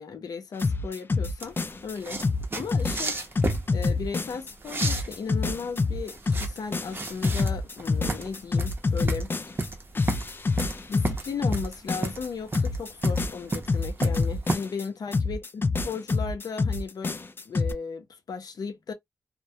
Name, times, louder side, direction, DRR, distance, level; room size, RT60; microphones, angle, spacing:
voice 1, 0.0-1.6 1.8-2.2 2.5-9.3 10.9-18.9, left 5 dB, 75° left, 0.6 m, -36 dB
sound 1, 0.6-1.9 2.2-4.5 4.8-9.7 10.0-12.3 12.5-14.8 15.1-17.7, left 3 dB, 30° left, 0.3 m, -27 dB
sound 2, 1.4-14.6, right 2 dB, 35° right, 0.7 m, -33 dB
2.2 x 2.1 x 2.7 m
wide cardioid pair, 95°, 7 cm